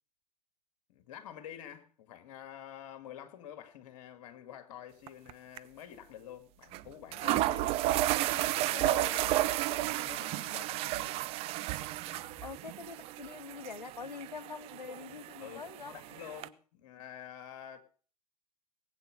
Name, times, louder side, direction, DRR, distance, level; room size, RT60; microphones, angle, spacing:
voice 1, 0.9-7.8 8.2-11.2 12.1-12.5 15.4-17.8, left 10 dB, 50° left, 2.3 m, -48 dB
sound 1, 5.1-5.3 5.6-5.7 6.7-6.8 7.1-16.5, right 16 dB, 30° right, 0.6 m, -33 dB
voice 2, 8.9-9.4 12.4-15.9, left 5 dB, 85° left, 0.6 m, -44 dB
19.0 x 8.9 x 5.3 m
figure-of-eight pair, 100°, 21 cm